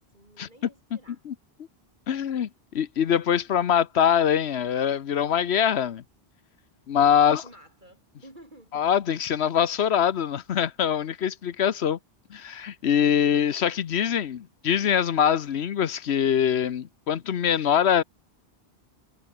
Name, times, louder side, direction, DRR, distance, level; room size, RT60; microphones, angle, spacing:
voice 1, 0.0-1.2 7.2-8.7, right 1 dB, 45° right, 7.9 m, -51 dB
voice 2, 2.1-2.5 2.7-6.0 6.9-7.4 8.7-12.0 12.3-18.0, left 8 dB, 80° left, 1.1 m, -23 dB
omnidirectional pair, 1.1 m